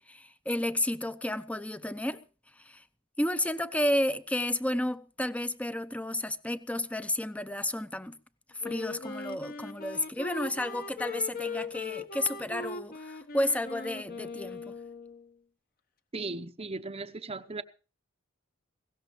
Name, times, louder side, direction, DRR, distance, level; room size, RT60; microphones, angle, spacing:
voice 1, 0.0-2.2 2.6-2.8 3.2-8.2 8.6-14.7, left 1 dB, 5° left, 0.8 m, -32 dB
Wind instrument woodwind instrument, 8.6-15.3, left 4 dB, 45° left, 1.2 m, -40 dB
voice 2, 16.1-17.6, right 3 dB, 30° right, 0.9 m, -37 dB
20.0 x 17.0 x 3.1 m
head